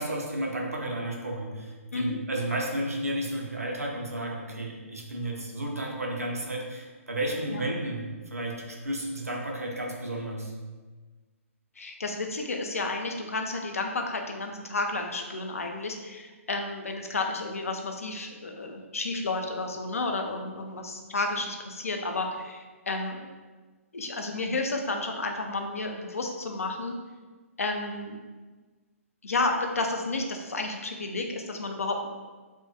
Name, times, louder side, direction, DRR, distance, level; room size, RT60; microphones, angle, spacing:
voice 1, 0.0-10.5, right 1 dB, 80° right, 0 dB, 0.5 m, -32 dB
voice 2, 11.8-23.3 23.9-26.9 27.6-28.2 29.2-32.1, left 3 dB, 70° left, 3 dB, 0.3 m, -31 dB
2.2 x 2.1 x 2.7 m, 1.3 s
figure-of-eight pair, 125°, 8 cm